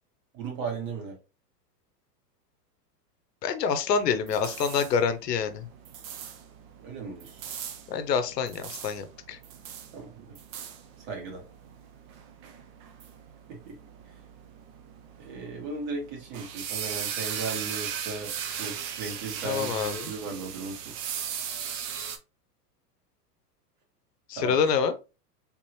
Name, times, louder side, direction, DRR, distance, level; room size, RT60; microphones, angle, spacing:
voice 1, 0.3-1.2 6.8-7.5 9.9-10.3 11.0-11.4 13.5-13.8 15.2-18.3 18.6-20.9 24.4-24.6, right 4 dB, 55° right, 0 dB, 2.0 m, -36 dB
voice 2, 3.4-5.7 7.9-9.4 19.4-20.1 24.3-24.9, left 6 dB, 80° left, 10 dB, 0.8 m, -27 dB
sound 1, 3.9-22.2, right 8 dB, 30° right, 0.3 m, -38 dB
3.6 x 3.0 x 2.9 m, 0.30 s
hypercardioid pair, 105°, 48 cm